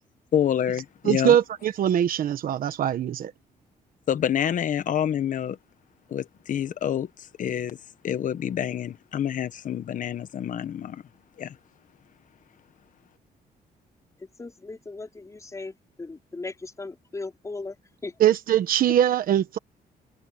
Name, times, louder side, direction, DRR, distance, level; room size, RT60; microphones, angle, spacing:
voice 1, 0.3-1.4 4.1-5.6 6.1-7.1 7.4-7.8 8.0-11.0 11.4-11.6, left 9 dB, 55° left, 1.2 m, -27 dB
voice 2, 1.1-3.3 18.2-19.6, right 10 dB, 60° right, 1.1 m, -22 dB
voice 3, 14.2-17.8 18.0-18.1, left 3 dB, 20° left, 4.4 m, -37 dB
cardioid pair, 140°, 16 cm